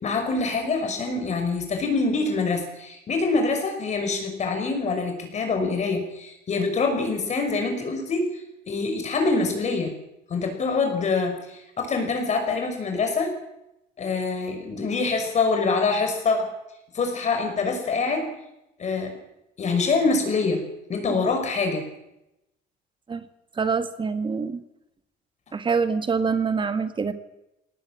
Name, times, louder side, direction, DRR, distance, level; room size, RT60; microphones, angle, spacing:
voice 1, 0.0-9.9 10.3-13.3 14.0-16.5 16.9-18.3 18.8-19.1 19.6-20.6 20.9-21.8, left 4 dB, 45° left, 4 dB, 5.9 m, -25 dB
voice 2, 23.6-24.6 25.5-27.1, right 5 dB, 30° right, 10 dB, 1.7 m, -25 dB
19.5 x 18.5 x 8.9 m, 0.88 s
cardioid pair, 110°, 17 cm